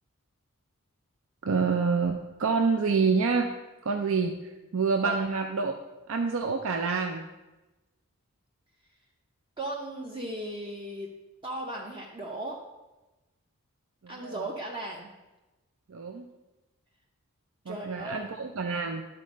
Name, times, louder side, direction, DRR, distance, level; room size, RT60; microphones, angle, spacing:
voice 1, 1.4-3.5 3.8-4.3 4.7-5.7 6.1-7.3 14.0-14.4 15.9-16.3 17.7-19.0, right 4 dB, 65° right, 4 dB, 0.5 m, -27 dB
voice 2, 9.6-11.1 11.4-12.6 14.1-15.1 17.7-18.3, right 1 dB, 25° right, -2 dB, 0.7 m, -36 dB
11.0 x 4.4 x 5.2 m, 1.1 s
head